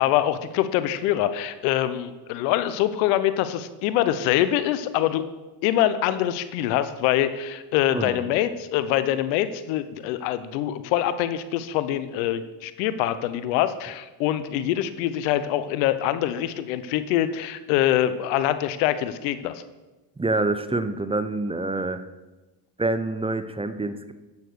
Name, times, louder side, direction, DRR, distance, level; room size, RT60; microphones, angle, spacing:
voice 1, 0.0-5.2 5.6-19.6, left 12 dB, 85° left, 13 dB, 0.8 m, -24 dB
voice 2, 7.9-8.2 20.2-22.0 22.8-24.1, right 2 dB, 10° right, 11 dB, 0.7 m, -26 dB
9.5 x 7.1 x 6.3 m, 1.1 s
supercardioid pair, 75°, 45 cm